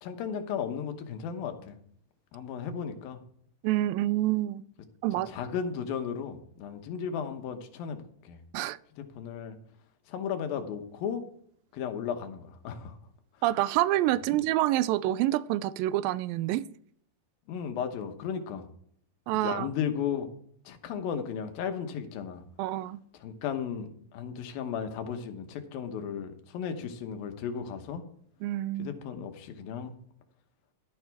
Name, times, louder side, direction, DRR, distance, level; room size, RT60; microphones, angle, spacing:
voice 1, 0.0-1.8 2.3-3.2 5.3-8.4 9.0-9.6 10.1-11.2 11.7-13.0 17.5-18.7 19.4-20.3 20.7-22.4 23.2-28.0 28.8-29.9, left 7 dB, 85° left, 7 dB, 3.0 m, -35 dB
voice 2, 3.6-4.6 5.0-5.3 8.5-8.8 13.4-16.7 19.3-19.7 22.6-23.0 28.4-28.9, right 15 dB, 85° right, 17 dB, 2.3 m, -27 dB
12.0 x 10.5 x 3.5 m, 0.62 s
omnidirectional pair, 4.1 m